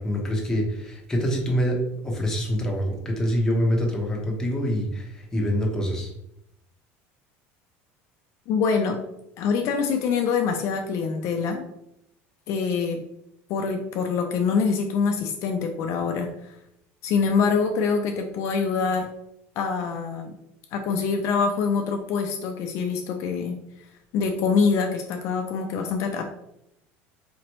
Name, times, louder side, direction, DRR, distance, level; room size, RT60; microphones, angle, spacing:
voice 1, 0.0-1.8 2.0-6.1, equal, 10° left, -1 dB, 0.9 m, -25 dB
voice 2, 8.5-9.0 9.4-11.7 12.5-13.0 13.5-16.6 17.0-19.1 19.6-20.3 20.7-23.6 24.1-26.2, left 5 dB, 55° left, 4 dB, 0.5 m, -25 dB
4.2 x 3.0 x 3.0 m, 0.81 s
cardioid pair, 140°, 6 cm